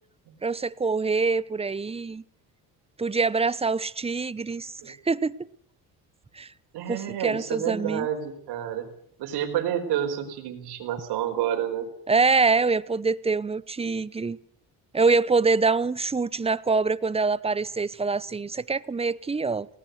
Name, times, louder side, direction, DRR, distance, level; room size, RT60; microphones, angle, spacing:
voice 1, 0.4-2.2 3.0-5.3 6.3-6.5 6.9-8.1 12.1-14.4 14.9-19.7, right 4 dB, 15° right, 0.8 m, -25 dB
voice 2, 6.7-8.9 9.2-11.9, right 10 dB, 80° right, 4.7 m, -29 dB
18.5 x 18.0 x 8.1 m
cardioid pair, 95°, 39 cm